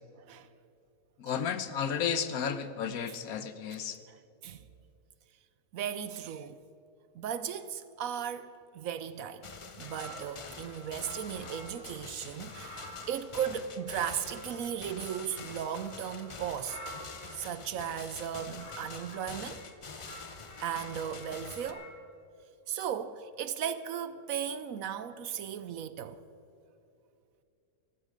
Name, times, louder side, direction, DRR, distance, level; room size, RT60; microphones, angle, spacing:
voice 1, 0.2-0.5 1.3-1.4 3.1-3.2 4.1-4.2 4.4-4.6 5.7-6.6 7.1-9.5 9.8-16.8 17.3-19.6 20.6-21.9 22.7-26.2, right 8 dB, 70° right, 0.9 m, -36 dB
voice 2, 1.2-4.0, left 7 dB, 70° left, 1.2 m, -33 dB
sound 1, 9.4-21.7, left 4 dB, 50° left, 0.3 m, -46 dB
sound 2, 9.8-11.9 12.3-17.4 18.1-19.7 20.0-22.0, equal, 85° left, 4.0 m, -49 dB
15.0 x 14.5 x 5.1 m
omnidirectional pair, 1.7 m